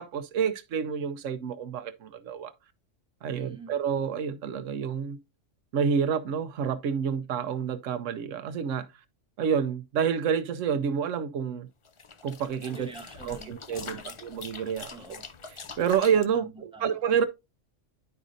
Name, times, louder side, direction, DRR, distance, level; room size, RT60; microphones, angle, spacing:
voice 1, 0.0-2.5 3.2-5.2 5.7-8.9 9.4-11.7 12.2-12.9 13.2-14.9 15.8-16.5 16.8-17.3, right 7 dB, 80° right, 1.0 m, -28 dB
voice 2, 3.3-3.7 12.7-14.1 14.9-15.3 16.3-17.0, right 2 dB, 5° right, 1.3 m, -46 dB
sound 1, 11.8-16.3, left 5 dB, 45° left, 0.4 m, -44 dB
10.5 x 5.0 x 2.6 m
omnidirectional pair, 1.3 m